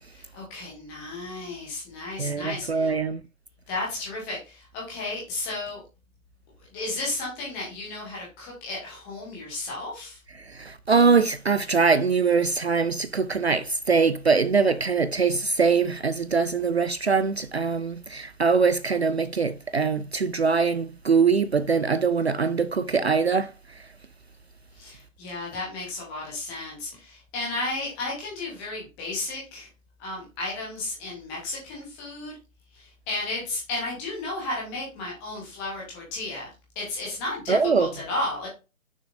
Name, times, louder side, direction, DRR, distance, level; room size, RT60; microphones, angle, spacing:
voice 1, 0.1-2.9 3.7-5.8 6.7-10.2 24.8-29.7 30.0-32.4 32.7-36.5 36.8-38.5, left 2 dB, 5° left, 0.8 m, -33 dB
voice 2, 2.2-3.2 10.4-23.5 37.5-37.9, right 5 dB, 50° right, 0.5 m, -23 dB
6.6 x 6.3 x 2.6 m
figure-of-eight pair, 145°, 41 cm